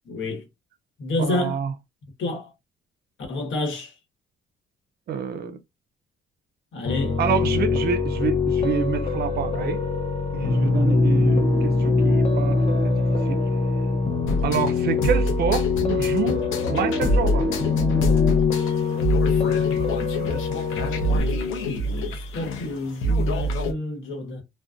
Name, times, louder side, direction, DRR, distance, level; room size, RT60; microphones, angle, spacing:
voice 1, 0.1-0.4 1.0-1.6 2.2-2.5 3.3-3.9 6.7-7.2 21.1-24.4, left 2 dB, 70° left, 1.1 m, -29 dB
voice 2, 1.2-1.7 5.1-5.6 7.2-9.8 10.3-13.4 14.4-17.6, right 7 dB, 55° right, 0.5 m, -27 dB
Piano, 6.9-21.2, left 4 dB, 30° left, 0.6 m, -23 dB
sound 1, 10.7-15.1 15.5-15.6 16.2-18.4, equal, ahead, 1.0 m, -32 dB
sound 2, 14.2-23.7, equal, 90° left, 0.6 m, -26 dB
2.5 x 2.1 x 2.3 m
cardioid pair, 90°, 20 cm